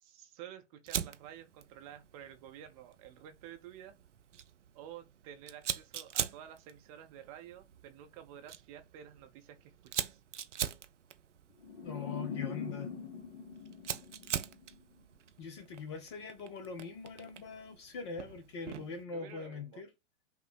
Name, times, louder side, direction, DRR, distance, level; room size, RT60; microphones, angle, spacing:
voice 1, 0.0-3.9 4.7-10.2 19.1-19.8, right 10 dB, 30° right, 0.7 m, -51 dB
Fire, 0.9-19.0, right 9 dB, 75° right, 0.6 m, -43 dB
sound 1, 11.6-14.8, left 5 dB, 50° left, 0.8 m, -42 dB
voice 2, 11.8-12.9 15.4-19.9, left 5 dB, 25° left, 0.4 m, -42 dB
5.6 x 2.0 x 4.3 m
figure-of-eight pair, 110°, 37 cm